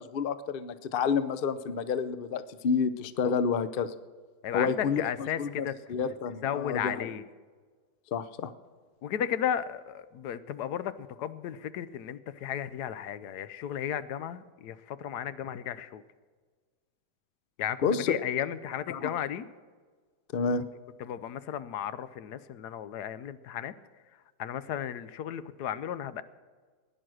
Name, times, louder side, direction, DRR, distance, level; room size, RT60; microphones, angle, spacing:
voice 1, 0.0-3.9 4.5-5.0 5.4-7.1 8.1-8.5 17.8-18.2 18.9-19.1 20.3-20.6, left 6 dB, 60° left, 13 dB, 0.5 m, -29 dB
voice 2, 4.4-5.7 6.1-6.2 6.4-7.3 9.0-16.0 17.6-19.5 21.0-23.7 24.4-26.2, left 9 dB, 75° left, 14 dB, 1.2 m, -34 dB
16.5 x 10.5 x 6.3 m, 1.5 s
omnidirectional pair, 1.8 m